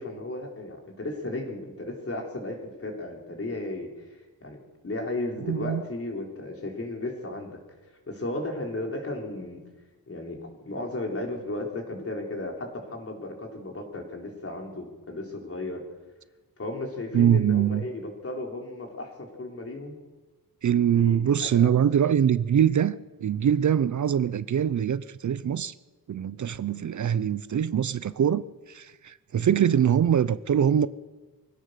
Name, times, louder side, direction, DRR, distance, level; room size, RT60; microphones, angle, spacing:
voice 1, 0.0-7.6 8.1-9.7 10.1-15.8 16.6-20.0 20.9-21.2 21.4-21.7, left 2 dB, 40° left, 4.1 m, -35 dB
voice 2, 5.5-5.8 17.1-17.8 20.6-25.7 26.1-30.9, right 9 dB, 55° right, 0.6 m, -23 dB
24.0 x 16.5 x 6.7 m
wide cardioid pair, 135°, 36 cm